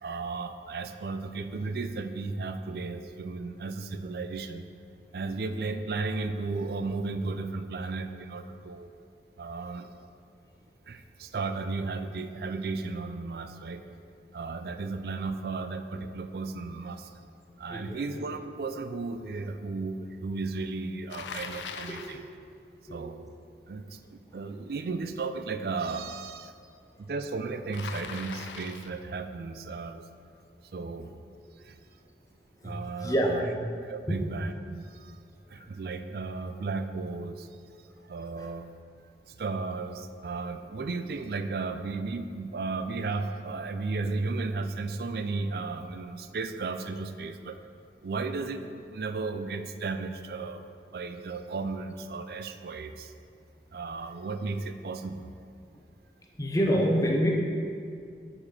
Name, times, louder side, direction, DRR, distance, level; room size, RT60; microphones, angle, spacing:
voice 1, 0.0-4.7 5.1-8.9 9.4-9.9 10.9-13.8 14.3-17.1 17.6-22.2 22.9-23.3 23.7-26.5 27.0-30.0 30.7-31.1 31.6-31.8 32.6-33.5 33.8-35.2 35.5-37.5 38.1-38.7 39.4-47.6 48.0-50.6 50.9-53.1 53.7-55.3, right 3 dB, 60° right, 9 dB, 0.4 m, -34 dB
voice 2, 17.7-18.0 21.9-22.2 22.9-23.0 32.6-33.6 34.1-34.2 35.6-35.7 38.4-38.5 56.4-57.3, equal, 20° left, 0 dB, 0.7 m, -27 dB
Bicycle, 21.1-22.2 27.7-29.0, left 5 dB, 90° left, 0.5 m, -40 dB
6.0 x 5.1 x 6.3 m, 2.3 s
head